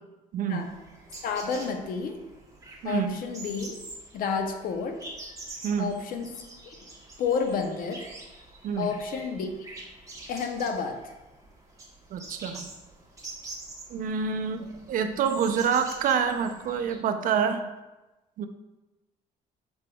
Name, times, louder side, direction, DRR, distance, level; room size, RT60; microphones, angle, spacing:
voice 1, 0.3-0.7 2.8-3.2 5.6-6.0 8.6-8.9 12.1-12.7 13.9-17.7 18.4-18.5, right 6 dB, 55° right, 7 dB, 0.4 m, -27 dB
sound 1, 0.6-17.0, right 2 dB, 20° right, 0.9 m, -45 dB
voice 2, 1.2-2.2 2.8-3.7 4.1-5.0 5.8-6.3 6.6-6.7 7.2-8.1 8.8-9.5 10.3-11.0, left 5 dB, 60° left, 5 dB, 0.6 m, -30 dB
5.9 x 3.3 x 2.2 m, 1.1 s
cardioid pair, 110°, 17 cm